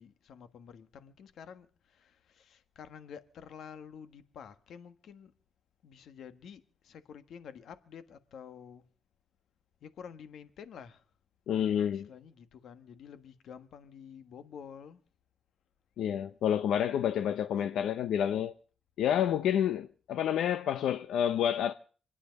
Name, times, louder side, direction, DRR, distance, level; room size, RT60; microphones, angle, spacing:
voice 1, 0.0-5.3 5.8-8.8 9.8-11.0 11.9-15.0 17.7-17.8, left 7 dB, 65° left, 1.5 m, -49 dB
voice 2, 11.5-12.1 16.0-18.5 19.0-21.7, left 9 dB, 85° left, 0.7 m, -29 dB
26.5 x 10.0 x 5.3 m
cardioid pair, 160°, 0 cm